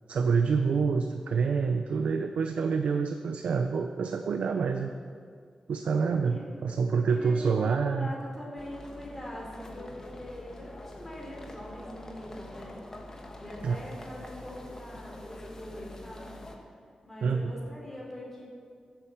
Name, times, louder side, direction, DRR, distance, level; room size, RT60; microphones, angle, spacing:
voice 1, 0.1-4.9 5.7-8.1 13.6-13.8 17.2-17.6, right 5 dB, 80° right, 6 dB, 0.6 m, -27 dB
voice 2, 6.1-6.4 6.9-12.8 13.4-16.4 17.0-18.4, left 1 dB, 10° left, -4 dB, 3.9 m, -43 dB
sound 1, 8.6-16.6, left 1 dB, 25° left, 1.4 m, -45 dB
14.5 x 8.1 x 7.1 m, 2.1 s
wide cardioid pair, 160°, 2 cm